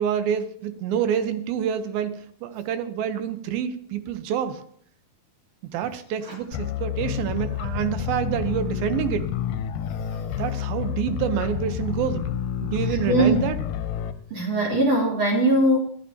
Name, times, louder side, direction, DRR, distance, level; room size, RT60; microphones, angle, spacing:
voice 1, 0.0-4.6 5.7-9.2 10.4-12.2 12.6-13.6, right 9 dB, 90° right, 9 dB, 2.8 m, -27 dB
sound 1, 6.5-14.1, left 9 dB, 75° left, 2.1 m, -29 dB
voice 2, 13.1-13.5 14.3-15.8, right 1 dB, 45° right, -1 dB, 3.9 m, -20 dB
25.0 x 9.0 x 2.8 m, 0.64 s
omnidirectional pair, 4.1 m